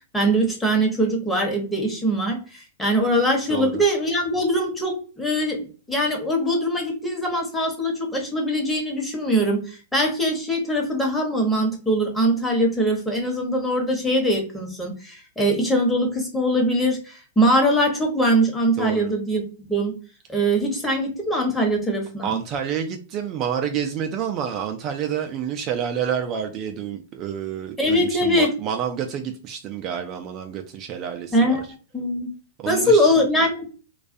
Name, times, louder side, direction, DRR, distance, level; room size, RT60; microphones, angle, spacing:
voice 1, 0.1-20.0 20.3-22.4 27.8-28.5 31.3-31.6 31.9-32.3 32.7-33.7, equal, 10° left, 0 dB, 0.9 m, -22 dB
voice 2, 3.5-3.8 18.8-19.1 22.2-31.7 32.6-33.3, right 8 dB, 40° right, 4 dB, 0.3 m, -29 dB
2.3 x 2.3 x 2.5 m, 0.36 s
hypercardioid pair, 115°, 0 cm